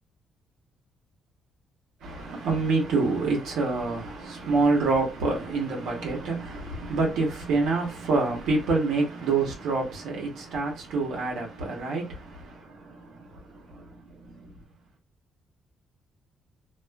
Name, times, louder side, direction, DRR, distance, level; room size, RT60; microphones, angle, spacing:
voice 1, 2.0-13.8 14.3-14.5, right 3 dB, 85° right, 0.9 m, -27 dB
2.3 x 2.3 x 2.2 m
cardioid pair, 90°, 0 cm